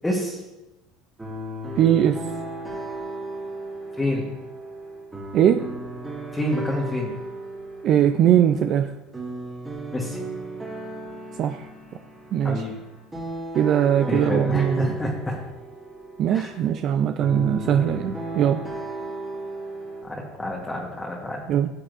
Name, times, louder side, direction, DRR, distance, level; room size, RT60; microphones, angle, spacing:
voice 1, 0.0-0.4 4.0-4.2 6.3-7.1 9.9-10.2 12.4-12.7 14.1-15.4 16.3-16.5 20.0-21.4, left 1 dB, 10° left, -3 dB, 1.3 m, -28 dB
sound 1, 1.2-20.0, right 2 dB, 15° right, 2.3 m, -35 dB
voice 2, 1.8-2.2 5.3-5.7 7.8-8.9 11.4-11.7 12.3-12.6 13.5-15.0 16.2-18.6 21.5-21.7, right 9 dB, 50° right, 8 dB, 0.4 m, -20 dB
13.5 x 7.3 x 2.6 m, 1.0 s
supercardioid pair, 120°, 0 cm